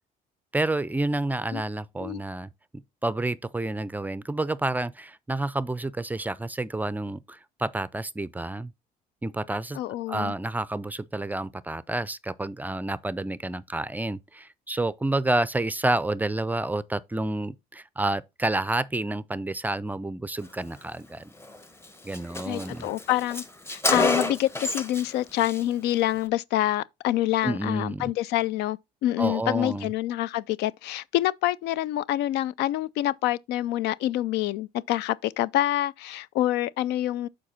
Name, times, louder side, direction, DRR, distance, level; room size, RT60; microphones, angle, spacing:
voice 1, 0.5-8.7 9.2-9.8 10.1-21.3 22.0-22.9 27.4-28.1 29.2-29.9, right 2 dB, 10° right, 0.4 m, -29 dB
voice 2, 9.7-10.3 22.4-23.4 23.7-37.3, left 14 dB, 80° left, 0.4 m, -26 dB
Car, 21.4-21.6 21.8-21.9 22.1-25.1 25.4-25.6, left 2 dB, 15° left, 0.9 m, -28 dB
7.6 x 4.5 x 4.2 m
cardioid pair, 110°, 17 cm